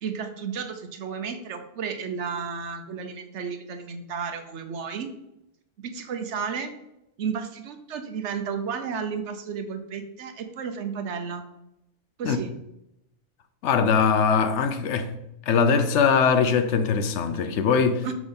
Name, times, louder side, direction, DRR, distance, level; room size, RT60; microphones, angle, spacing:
voice 1, 0.0-5.1 5.8-6.7 7.2-11.4 12.2-12.5 18.0-18.1, right 6 dB, 75° right, 1.0 m, -32 dB
voice 2, 13.6-15.1 15.5-18.1, left 6 dB, 75° left, 0.9 m, -21 dB
6.0 x 3.7 x 5.2 m
omnidirectional pair, 1.2 m